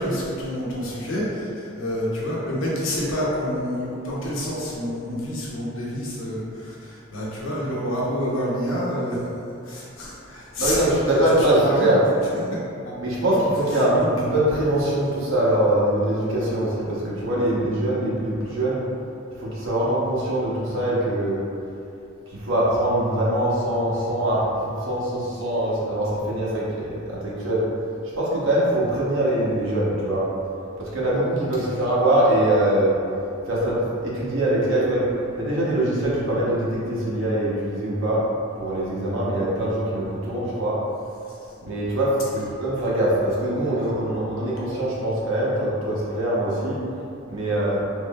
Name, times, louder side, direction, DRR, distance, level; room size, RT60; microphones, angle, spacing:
voice 1, 0.0-9.2 9.6-10.8 11.3-11.9 12.5-12.6 12.8-13.0 13.3-13.4 13.9-14.1 42.3-42.4, equal, 80° left, -6 dB, 0.9 m, -28 dB
voice 2, 10.6-12.0 13.0-18.8 19.4-21.4 22.3-27.6 28.1-30.2 30.8-33.0 33.5-35.1 35.4-38.2 38.6-40.8 41.6-42.2 42.6-46.7 47.3-47.8, right 1 dB, 70° right, -7 dB, 0.9 m, -23 dB
3.5 x 3.2 x 2.3 m, 2.6 s
head